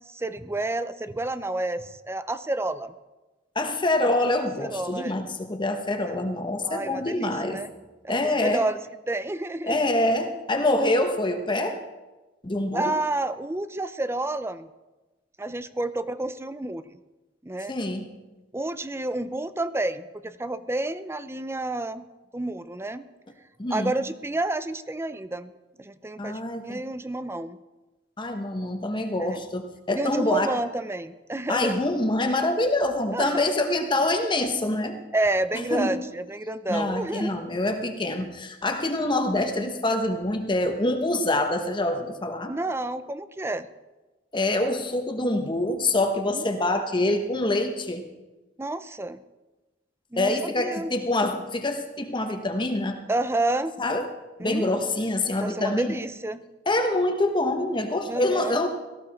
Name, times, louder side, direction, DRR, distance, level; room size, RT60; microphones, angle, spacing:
voice 1, 0.0-2.9 4.6-5.2 6.0-6.3 6.6-7.7 8.0-8.8 9.1-9.7 12.7-14.7 15.4-16.8 17.4-17.7 18.5-22.1 22.3-23.0 23.7-25.5 25.8-27.6 29.2-29.4 29.9-31.7 33.1-33.5 35.1-37.4 42.5-43.7 46.3-46.8 48.6-49.2 50.1-50.9 53.1-53.7 54.4-55.0 55.4-56.4 58.1-58.6, right 2 dB, 15° right, 13 dB, 0.5 m, -30 dB
voice 2, 3.5-7.6 8.1-8.6 9.7-11.8 12.4-12.9 17.7-18.1 23.6-23.9 26.2-26.8 28.2-30.5 31.5-35.0 35.7-35.9 36.7-42.5 44.3-48.0 50.2-53.0 53.8-54.0 54.4-56.0 56.7-58.7, left 2 dB, 25° left, 5 dB, 1.2 m, -25 dB
17.5 x 14.5 x 4.3 m, 1.1 s
head